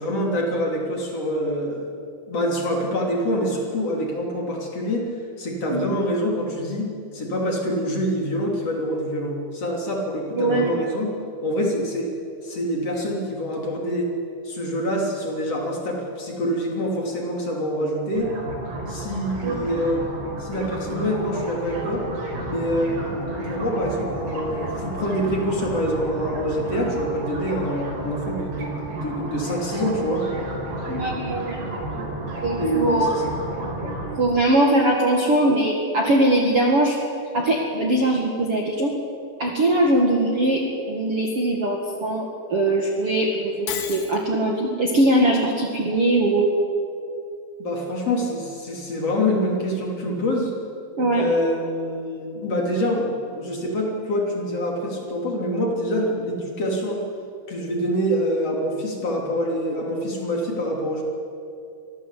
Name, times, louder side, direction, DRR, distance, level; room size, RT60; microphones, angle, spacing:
voice 1, 0.0-1.9 2.3-5.1 5.4-12.1 12.4-14.1 14.4-18.3 18.9-20.0 20.4-22.0 22.5-30.3 32.5-33.3 47.6-50.5 51.1-57.0 57.5-61.0, equal, 35° left, 0 dB, 3.1 m, -26 dB
voice 2, 10.3-10.8 19.4-19.6 30.9-31.6 32.4-33.2 33.8-33.9 34.2-37.0 37.3-38.9 39.4-40.6 40.9-42.2 42.5-46.5 51.0-51.3, right 1 dB, 85° right, 0 dB, 1.2 m, -21 dB
sound 1, 18.1-34.2, right 2 dB, 55° right, 5.7 m, -31 dB
Shatter, 43.7-44.2, left 9 dB, 75° left, 4.4 m, -31 dB
24.0 x 16.5 x 8.3 m, 2.5 s
omnidirectional pair, 6.0 m